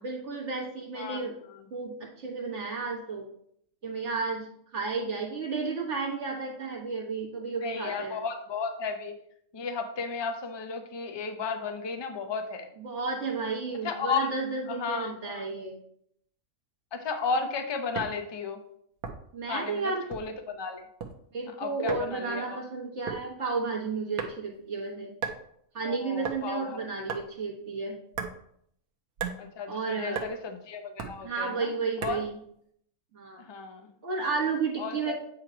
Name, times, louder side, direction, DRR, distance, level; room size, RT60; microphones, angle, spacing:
voice 1, 0.0-1.4 1.7-3.2 3.8-4.5 4.7-8.2 12.8-15.8 19.3-20.0 21.3-25.1 25.7-27.9 29.7-30.2 31.2-32.4 33.1-33.4 34.0-35.1, right 4 dB, 50° right, -2 dB, 1.6 m, -32 dB
voice 2, 1.0-1.6 7.6-9.1 9.5-12.7 13.8-14.3 14.7-15.4 16.9-18.6 19.5-20.9 21.6-22.6 25.8-26.8 29.4-31.7 32.0-32.2 33.4-33.9 34.8-35.1, left 5 dB, 35° left, 6 dB, 0.4 m, -34 dB
sound 1, 18.0-18.2 19.0-19.4 20.1-20.4 20.8-21.1 21.9-22.1 23.1-23.3 24.2-24.6 25.2-25.4 26.2-26.4 27.1-27.3 28.1-28.4 29.2-29.4 30.2-30.3 31.0-31.2 32.0-32.3, right 6 dB, 85° right, 1.4 m, -34 dB
8.7 x 3.0 x 5.0 m, 0.69 s
omnidirectional pair, 1.6 m